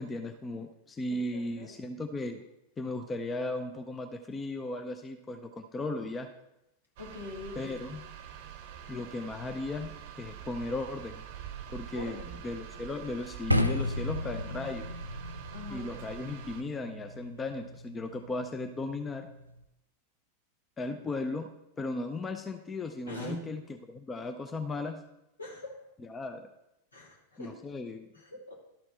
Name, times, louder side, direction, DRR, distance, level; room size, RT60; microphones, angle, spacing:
voice 1, 0.0-2.4 2.8-6.3 7.6-8.1 8.9-11.2 11.7-12.2 12.4-14.9 15.7-19.3 20.8-21.5 21.8-23.6 23.9-25.0 26.0-26.5 27.4-28.1, left 2 dB, 15° left, 6 dB, 0.5 m, -36 dB
voice 2, 1.1-1.7 7.0-7.7 11.9-12.4 15.5-15.9 23.1-23.5 25.4-25.8 26.9-27.6 28.1-28.5, left 2 dB, 75° left, -1 dB, 2.0 m, -42 dB
sound 1, 7.0-16.6, right 9 dB, 50° right, 0.7 m, -45 dB
sound 2, 13.5-19.6, left 1 dB, 85° right, 0.4 m, -35 dB
11.5 x 4.4 x 4.2 m, 0.87 s
figure-of-eight pair, 90°, 0 cm